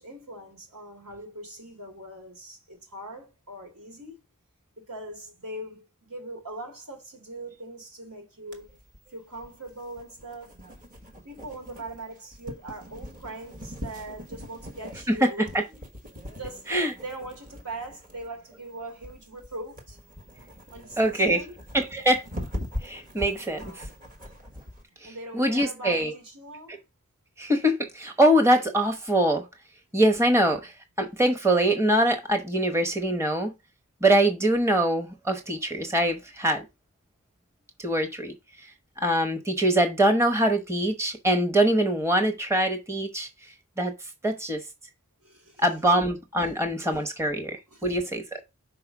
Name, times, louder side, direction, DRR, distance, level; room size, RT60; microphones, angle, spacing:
voice 1, 0.0-4.2 4.8-8.7 9.1-10.6 11.2-15.9 16.3-20.0 20.7-21.6 25.0-26.8 45.2-45.7 46.4-46.5 46.9-47.0 47.7-48.4, right 1 dB, 90° right, 3.0 m, -41 dB
sound 1, 8.5-24.8, left 1 dB, 40° right, 1.3 m, -41 dB
voice 2, 15.1-15.6 16.7-16.9 21.0-21.4 21.7-22.2 22.8-23.6 25.3-26.1 27.4-29.4 29.9-30.7 31.0-33.5 34.0-36.6 37.8-38.3 39.0-43.3 43.8-43.9 44.2-44.6 45.6-47.6 47.8-48.4, right 1 dB, 10° right, 0.9 m, -23 dB
5.7 x 4.3 x 5.9 m
head